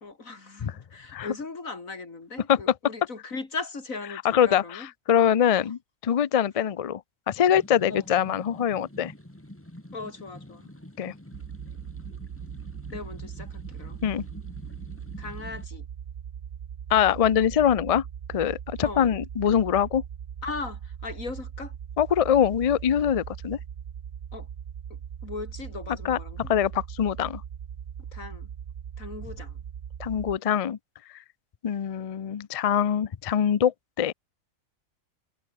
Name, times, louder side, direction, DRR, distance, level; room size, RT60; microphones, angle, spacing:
voice 1, 0.0-4.9 5.6-5.7 7.9-8.0 9.9-10.7 12.9-14.0 15.2-15.9 18.8-19.2 20.4-21.8 24.3-24.5 25.2-26.4 28.1-28.5 29.0-29.6, left 3 dB, 80° left, 3.6 m, -38 dB
voice 2, 4.2-7.0 7.3-9.1 11.0-11.1 14.0-14.2 16.9-20.0 22.0-23.6 26.0-27.4 30.0-30.8 31.6-34.1, left 9 dB, 60° left, 0.3 m, -24 dB
sound 1, 7.3-15.6, left 1 dB, 10° left, 3.0 m, -47 dB
sound 2, 11.3-30.4, right 8 dB, 50° right, 0.8 m, -40 dB
omnidirectional pair, 1.4 m